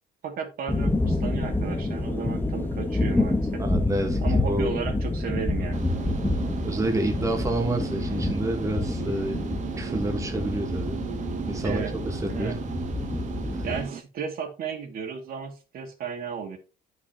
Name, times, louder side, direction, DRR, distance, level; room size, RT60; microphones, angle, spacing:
voice 1, 0.2-3.6 4.2-5.9 11.6-11.9 12.3-12.6 13.6-16.6, right 6 dB, 60° right, 2.4 m, -34 dB
sound 1, 0.7-13.8, left 2 dB, 10° left, 1.2 m, -28 dB
voice 2, 3.6-4.7 6.6-9.4 9.8-11.0 11.5-12.6 13.5-13.6, right 1 dB, 20° right, 1.5 m, -29 dB
sound 2, 5.7-14.0, right 8 dB, 45° right, 1.1 m, -36 dB
9.5 x 6.2 x 2.9 m
cardioid pair, 110°, 17 cm